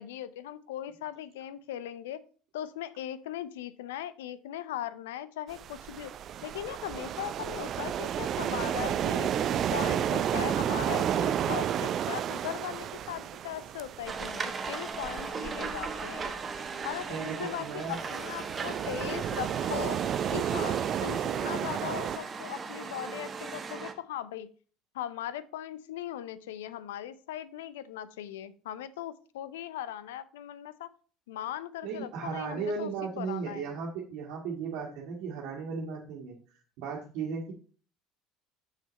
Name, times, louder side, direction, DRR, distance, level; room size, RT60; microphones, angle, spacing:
voice 1, 0.0-2.2 2.5-6.1 6.4-9.3 9.7-16.3 16.8-20.0 20.3-24.5 24.9-30.9 31.3-32.9 33.2-33.7, left 11 dB, 85° left, 16 dB, 0.5 m, -39 dB
sound 1, 5.5-22.2, right 10 dB, 50° right, 0.4 m, -32 dB
sound 2, 14.1-23.9, right 5 dB, 35° right, 1.1 m, -38 dB
voice 2, 17.1-18.0 31.8-36.4 36.8-37.5, right 5 dB, 70° right, -4 dB, 1.6 m, -36 dB
6.6 x 6.2 x 4.0 m, 0.41 s
supercardioid pair, 80°, 0 cm